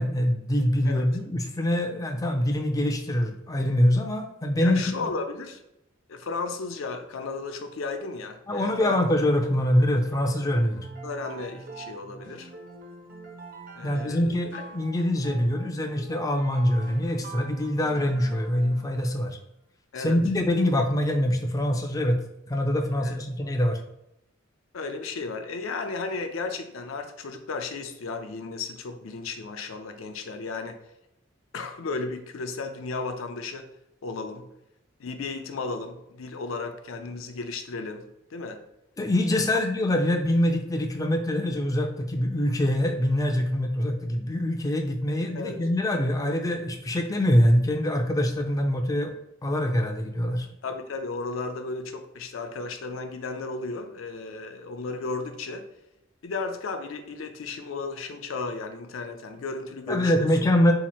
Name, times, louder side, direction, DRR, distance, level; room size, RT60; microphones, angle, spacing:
voice 1, 0.0-5.1 8.5-10.9 13.8-19.4 20.0-23.8 39.0-49.1 49.4-50.5 59.9-60.7, left 1 dB, 15° left, 4 dB, 0.3 m, -24 dB
voice 2, 4.6-5.6 6.1-9.0 11.0-12.5 13.7-14.6 19.9-20.2 23.0-23.2 24.7-30.8 31.5-33.7 34.0-34.5 35.0-38.6 45.3-45.6 50.6-55.6 56.2-60.3, left 3 dB, 80° left, 7 dB, 0.5 m, -34 dB
sound 1, 9.9-19.1, right 3 dB, 45° right, 0.6 m, -44 dB
2.8 x 2.5 x 4.2 m, 0.84 s
head